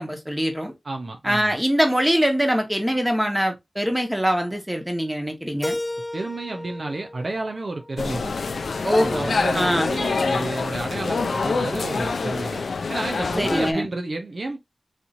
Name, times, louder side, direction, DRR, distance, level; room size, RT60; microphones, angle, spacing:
voice 1, 0.0-0.7 1.2-5.8 8.8-9.9 13.4-13.9, equal, 5° right, 1.3 m, -23 dB
voice 2, 0.8-1.6 6.1-8.4 9.0-12.6 12.9-14.6, right 2 dB, 60° right, 0.7 m, -31 dB
Keyboard (musical), 5.6-8.5, left 1 dB, 15° left, 0.4 m, -34 dB
sound 1, 8.0-13.7, left 4 dB, 90° left, 0.4 m, -26 dB
4.2 x 2.9 x 2.5 m
wide cardioid pair, 55°, 0 cm